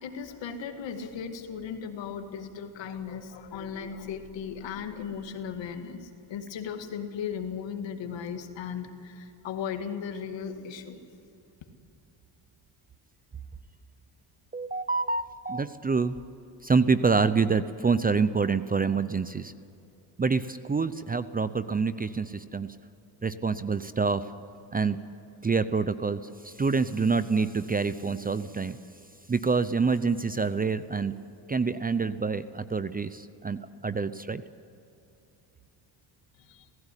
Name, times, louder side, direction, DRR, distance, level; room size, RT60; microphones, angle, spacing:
voice 1, 0.0-11.0 36.5-36.6, left 7 dB, 65° left, 6 dB, 2.1 m, -36 dB
voice 2, 14.5-16.2 16.6-19.5 20.2-22.7 23.2-24.2 24.7-25.0 25.4-28.8 29.3-31.1 31.5-34.4, right 4 dB, 20° right, 14 dB, 0.6 m, -27 dB
16.5 x 16.0 x 9.9 m, 2.8 s
cardioid pair, 95°, 47 cm